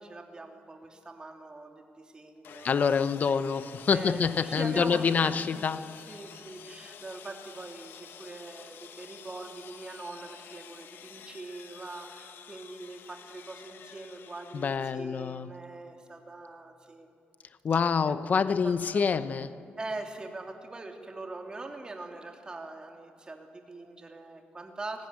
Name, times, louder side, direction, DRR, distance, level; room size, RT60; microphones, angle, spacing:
voice 1, 0.0-3.0 3.9-5.6 6.1-17.1 18.5-19.2 19.8-25.1, right 2 dB, 25° right, 3.0 m, -42 dB
Sawing, 2.4-14.8, left 8 dB, 85° left, 1.3 m, -50 dB
voice 2, 2.6-6.1 14.5-15.6 17.6-19.6, left 6 dB, 50° left, 0.9 m, -27 dB
29.5 x 20.0 x 9.8 m
wide cardioid pair, 135°, 4 cm